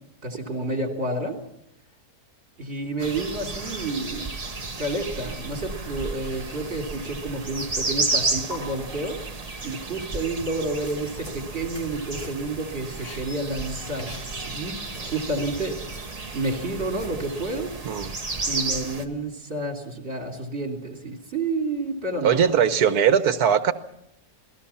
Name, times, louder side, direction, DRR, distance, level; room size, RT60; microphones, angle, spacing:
voice 1, 0.2-1.4 2.6-4.3 4.8-9.2 9.6-15.8 16.0-17.7 18.5-22.6, right 2 dB, 40° right, 3 dB, 3.6 m, -30 dB
sound 1, 3.0-19.0, right 3 dB, 25° right, 1.4 m, -32 dB
sound 2, 7.5-8.2 8.5-8.6 10.6-11.9 12.2-12.5 12.8-14.5 14.8-17.2, left 1 dB, 35° left, 4.2 m, -43 dB
voice 2, 22.2-23.7, right 8 dB, 70° right, 10 dB, 1.7 m, -20 dB
28.0 x 19.0 x 5.8 m, 0.79 s
omnidirectional pair, 1.7 m